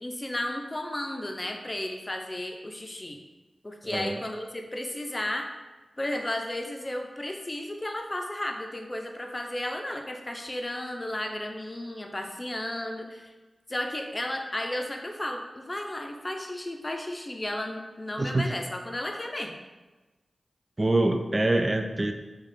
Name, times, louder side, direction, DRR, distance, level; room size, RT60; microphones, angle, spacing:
voice 1, 0.0-3.2 3.6-5.5 6.0-13.3 13.7-19.5, left 1 dB, 30° left, 3 dB, 0.6 m, -33 dB
voice 2, 3.8-4.2 18.2-18.5 20.8-22.1, right 2 dB, 35° right, 6 dB, 0.4 m, -25 dB
4.7 x 2.3 x 4.4 m, 1.2 s
cardioid pair, 45°, 0 cm